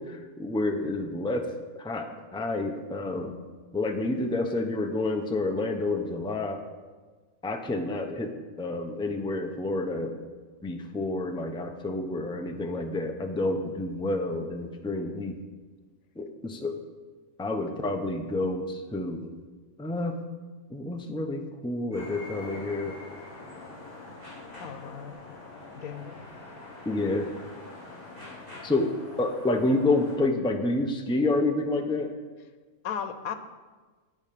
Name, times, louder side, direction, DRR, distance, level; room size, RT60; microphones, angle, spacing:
voice 1, 0.0-1.5 1.7-3.4 3.7-6.6 7.4-8.3 8.6-10.2 10.6-15.4 16.2-16.7 17.4-19.3 19.8-20.2 20.7-22.9 26.8-27.3 28.6-32.1, left 2 dB, 5° left, 4 dB, 0.6 m, -29 dB
sound 1, 21.9-30.2, left 2 dB, 30° right, 4.1 m, -44 dB
voice 2, 24.6-25.2 25.8-26.2 32.8-33.3, left 7 dB, 85° left, 10 dB, 1.3 m, -36 dB
9.0 x 9.0 x 6.7 m, 1.4 s
omnidirectional pair, 1.5 m